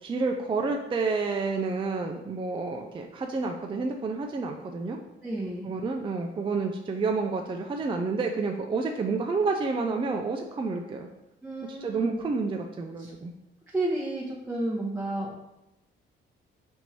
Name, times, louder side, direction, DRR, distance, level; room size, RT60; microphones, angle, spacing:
voice 1, 0.0-5.0 5.6-11.1 11.7-13.3, right 4 dB, 25° right, 3 dB, 0.4 m, -29 dB
voice 2, 5.2-5.7 11.4-12.2 13.0-13.1 13.7-15.4, right 1 dB, 10° right, -6 dB, 0.9 m, -31 dB
4.4 x 2.7 x 4.5 m, 0.91 s
cardioid pair, 90°, 20 cm